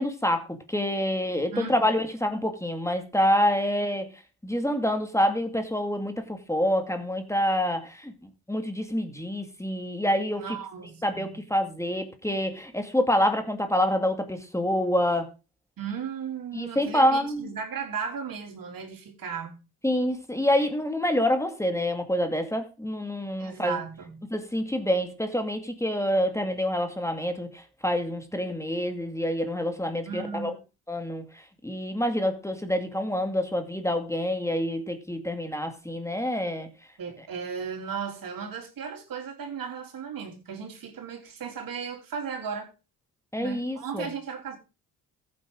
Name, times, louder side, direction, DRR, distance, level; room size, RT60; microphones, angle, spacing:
voice 1, 0.0-4.1 4.4-8.1 8.5-10.6 11.0-15.3 16.5-17.5 19.8-23.8 24.3-30.5 30.9-31.2 31.6-36.7 43.3-44.1, left 1 dB, 10° left, 2.2 m, -27 dB
voice 2, 1.5-2.0 10.4-11.4 15.8-19.6 23.4-24.2 30.1-30.6 37.0-42.7 43.4-44.6, right 6 dB, 60° right, 3.7 m, -36 dB
14.5 x 8.7 x 3.8 m
supercardioid pair, 65°, 38 cm